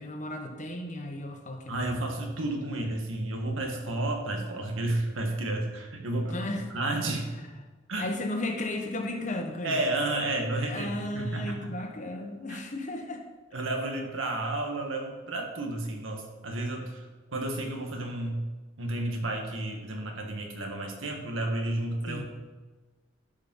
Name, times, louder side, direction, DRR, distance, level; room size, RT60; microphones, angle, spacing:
voice 1, 0.0-2.0 6.3-6.7 8.0-9.8 10.7-13.2 22.1-22.2, left 1 dB, 40° left, 4 dB, 1.1 m, -34 dB
voice 2, 1.7-6.5 6.7-7.3 7.9-8.1 9.6-11.7 12.5-12.6 13.5-18.5 18.8-22.2, right 2 dB, 80° right, 2 dB, 1.8 m, -31 dB
12.5 x 5.3 x 5.5 m, 1.3 s
head